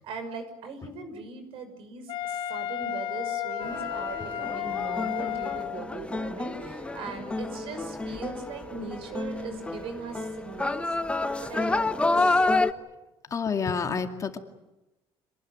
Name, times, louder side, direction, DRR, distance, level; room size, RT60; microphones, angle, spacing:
voice 1, 0.0-10.8 11.4-12.4, right 4 dB, 65° right, 9 dB, 5.9 m, -40 dB
Wind instrument woodwind instrument, 2.1-5.8, left 11 dB, 55° left, 2.6 m, -32 dB
Wind instrument woodwind instrument 2, 2.8-12.9, right 4 dB, 40° right, 6.9 m, -47 dB
sound 1, 3.6-12.7, left 2 dB, 10° left, 1.1 m, -29 dB
voice 2, 13.3-14.4, left 5 dB, 35° left, 6 dB, 2.3 m, -28 dB
27.0 x 19.5 x 9.4 m, 1.0 s
cardioid pair, 125°, 10 cm